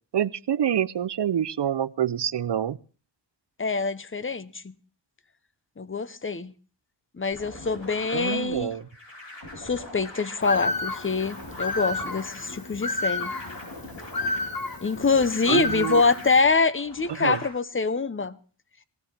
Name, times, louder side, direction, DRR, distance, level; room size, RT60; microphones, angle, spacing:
voice 1, 0.1-2.8 8.1-8.8 15.5-16.0 17.2-17.4, right 9 dB, 65° right, 0.6 m, -26 dB
voice 2, 3.6-4.7 5.8-6.5 7.2-8.7 9.6-13.3 14.8-18.4, left 4 dB, 30° left, 0.8 m, -25 dB
sound 1, 7.3-17.5, left 1 dB, 75° left, 7.3 m, -43 dB
Bird, 10.4-16.4, left 2 dB, 50° left, 1.5 m, -31 dB
18.5 x 16.0 x 3.4 m
wide cardioid pair, 80°, 44 cm